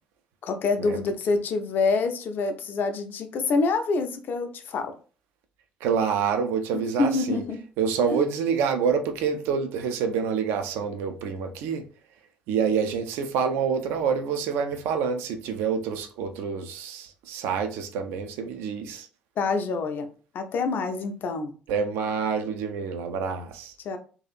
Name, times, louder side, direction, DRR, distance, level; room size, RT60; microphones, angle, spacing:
voice 1, 0.4-4.9 7.0-7.6 8.1-8.2 19.4-20.1 20.3-21.5 23.8-24.0, left 4 dB, 45° left, 0.4 m, -26 dB
voice 2, 5.8-7.4 7.8-11.8 12.5-19.1 21.7-23.7, right 6 dB, 60° right, 0.4 m, -27 dB
2.7 x 2.4 x 2.4 m
figure-of-eight pair, 50°, 5 cm